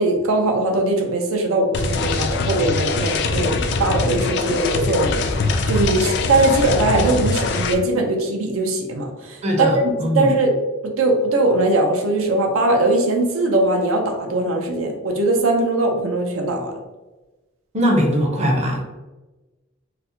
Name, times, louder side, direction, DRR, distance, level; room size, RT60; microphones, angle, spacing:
voice 1, 0.0-16.7, right 2 dB, 90° right, 2 dB, 0.6 m, -20 dB
sound 1, 1.7-7.7, left 3 dB, 60° left, 0.3 m, -22 dB
voice 2, 9.4-10.3 17.7-18.8, equal, 35° right, 0 dB, 0.6 m, -20 dB
4.0 x 2.1 x 2.7 m, 1.1 s
head